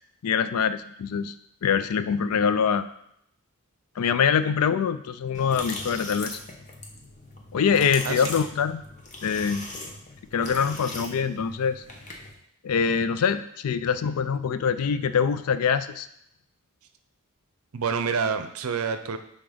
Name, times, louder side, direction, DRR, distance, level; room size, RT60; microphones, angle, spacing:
voice 1, 0.2-1.3 1.6-2.9 4.0-6.4 7.5-8.8 9.2-9.7 10.3-11.8 12.6-16.1, left 6 dB, 80° left, 12 dB, 0.4 m, -24 dB
sound 1, 5.3-12.3, left 2 dB, 35° left, 0.9 m, -39 dB
voice 2, 17.7-19.2, right 5 dB, 70° right, 9 dB, 0.5 m, -27 dB
6.1 x 3.8 x 5.0 m, 0.74 s
head